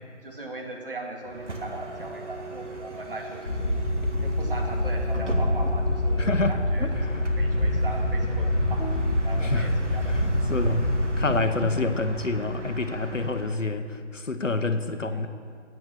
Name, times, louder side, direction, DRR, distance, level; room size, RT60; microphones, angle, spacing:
voice 1, 0.2-3.7 4.2-7.0 7.4-9.0 9.2-10.5 11.3-11.4 15.1-15.3, right 2 dB, 45° right, 1 dB, 2.3 m, -38 dB
Bus, 1.2-13.7, right 2 dB, 75° right, 1.9 m, -37 dB
sound 1, 3.5-11.2, left 1 dB, 40° left, 1.3 m, -25 dB
voice 2, 6.2-6.5 6.8-7.4 8.8-9.7 10.1-10.9 11.2-15.3, left 3 dB, 90° left, 8 dB, 1.2 m, -28 dB
12.5 x 9.4 x 7.4 m, 2.3 s
figure-of-eight pair, 160°, 36 cm